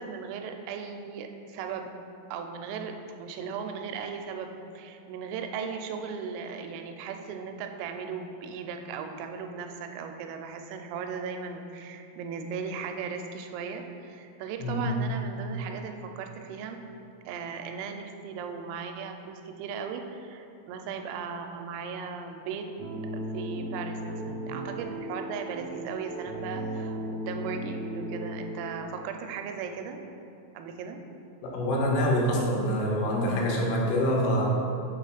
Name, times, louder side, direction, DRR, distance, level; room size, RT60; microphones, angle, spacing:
voice 1, 0.0-1.9 2.3-16.8 17.3-22.7 23.1-30.0 30.5-31.0, right 6 dB, 85° right, 5 dB, 3.2 m, -37 dB
voice 2, 14.6-15.1 31.4-34.5, equal, 85° left, -2 dB, 3.5 m, -26 dB
sound 1, 22.8-28.9, right 1 dB, 70° right, 3.2 m, -36 dB
7.4 x 3.0 x 5.7 m, 2.6 s
omnidirectional pair, 5.9 m